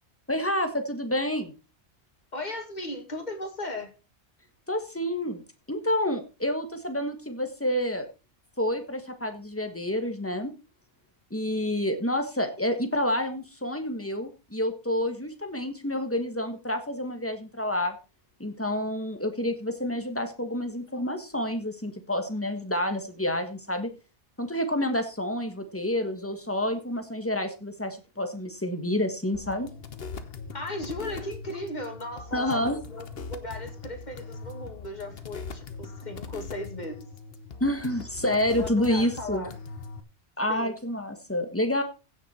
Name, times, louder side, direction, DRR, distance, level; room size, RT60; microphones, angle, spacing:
voice 1, 0.3-1.5 4.7-5.4 5.7-8.1 8.6-10.5 11.3-17.9 18.4-23.9 24.4-29.7 32.3-32.8 37.6-39.4 40.4-41.8, left 1 dB, 10° left, 7 dB, 1.6 m, -28 dB
voice 2, 2.3-3.9 30.5-37.1 38.5-39.6 40.5-40.8, left 1 dB, 40° left, 4 dB, 2.5 m, -37 dB
sound 1, 29.3-40.0, left 4 dB, 60° left, 1.3 m, -41 dB
16.0 x 6.6 x 4.4 m, 0.32 s
omnidirectional pair, 1.1 m